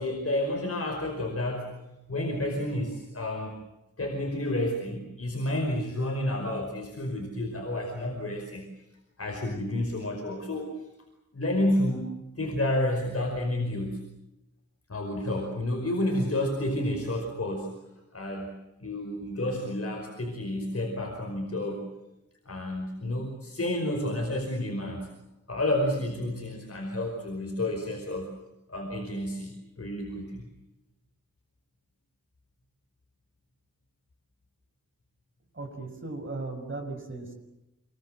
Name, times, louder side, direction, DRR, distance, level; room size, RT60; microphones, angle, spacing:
voice 1, 0.0-1.7 2.1-3.5 4.0-8.7 9.2-10.7 11.3-14.0 14.9-17.7 18.1-18.5 18.8-21.8 22.4-25.1 25.5-28.3 28.7-30.4, left 1 dB, 50° left, 1 dB, 5.1 m, -30 dB
voice 2, 35.5-37.3, right 3 dB, 40° right, 5 dB, 6.0 m, -37 dB
28.0 x 23.0 x 7.7 m, 0.96 s
wide cardioid pair, 95°, 31 cm